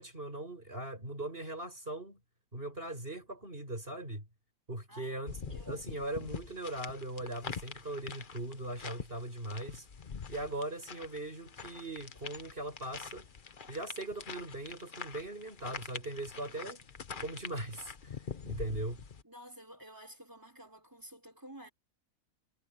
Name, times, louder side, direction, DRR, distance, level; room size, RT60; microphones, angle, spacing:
voice 1, 0.0-2.2 2.5-4.3 4.7-9.9 10.3-13.3 13.7-16.8 17.2-19.0, right 1 dB, 40° right, 7.4 m, -40 dB
voice 2, 4.9-6.3 16.4-16.8 19.2-21.7, equal, 15° right, 5.3 m, -53 dB
sound 1, 5.3-19.2, left 6 dB, 40° left, 1.1 m, -45 dB
omnidirectional pair, 1.5 m